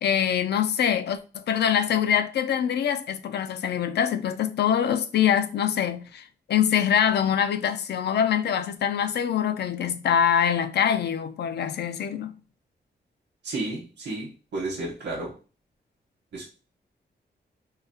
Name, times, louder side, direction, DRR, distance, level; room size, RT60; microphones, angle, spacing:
voice 1, 0.0-12.3, left 9 dB, 75° left, 0.4 m, -24 dB
voice 2, 13.4-15.4 16.3-16.4, right 2 dB, 90° right, 1.0 m, -32 dB
3.8 x 2.0 x 2.7 m
wide cardioid pair, 180°, 18 cm